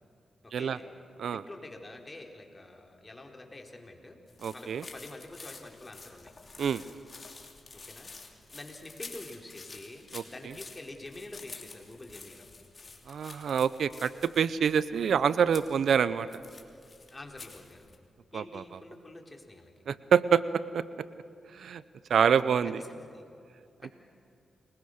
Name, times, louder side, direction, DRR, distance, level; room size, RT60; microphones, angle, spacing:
voice 1, 0.4-0.8 1.3-4.2 4.5-6.3 7.7-8.1 8.5-12.5 17.1-17.9 18.3-19.7 22.7-23.3 23.8-23.9, left 2 dB, 30° left, 2 dB, 4.2 m, -47 dB
sound 1, 4.3-18.0, left 3 dB, 45° left, 3.2 m, -49 dB
voice 2, 4.4-4.8 6.6-6.8 10.1-10.2 13.1-14.1 14.4-16.4 18.3-18.6 19.9-20.4 20.7-20.8 21.5-21.8 22.1-22.8, right 7 dB, 75° right, 16 dB, 0.6 m, -26 dB
29.5 x 20.5 x 6.6 m, 2.5 s
cardioid pair, 50°, 0 cm